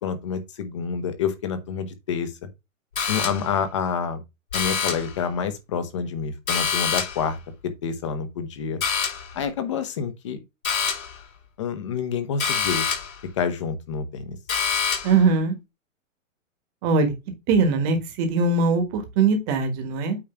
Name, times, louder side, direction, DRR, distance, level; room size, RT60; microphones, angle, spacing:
voice 1, 0.0-2.5 3.1-4.2 4.5-7.4 7.6-8.8 9.3-10.4 11.6-12.9 13.3-14.4, left 6 dB, 25° left, 0.9 m, -28 dB
sound 1, 3.0-3.6 4.5-5.2 6.5-7.3 8.8-9.3 10.6-11.2 12.4-13.2 14.5-15.2, left 6 dB, 85° left, 4.9 m, -26 dB
voice 2, 15.0-15.6 16.8-17.1 17.5-20.2, right 4 dB, 15° right, 1.3 m, -21 dB
8.8 x 3.1 x 5.7 m
hypercardioid pair, 180°, 40 cm